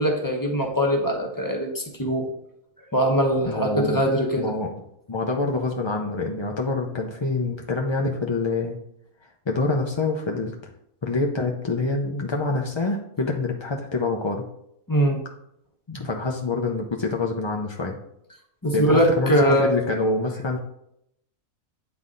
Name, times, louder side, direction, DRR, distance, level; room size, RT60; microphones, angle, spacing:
voice 1, 0.0-2.3 2.9-4.5 14.9-15.2 18.6-19.7, equal, 15° left, 2 dB, 1.0 m, -22 dB
voice 2, 3.4-4.0 4.4-4.7 5.1-8.8 9.5-10.5 11.0-14.5 15.9-18.0 18.7-20.6, left 3 dB, 40° left, 1 dB, 0.4 m, -26 dB
9.2 x 4.0 x 3.8 m, 0.75 s
omnidirectional pair, 1.4 m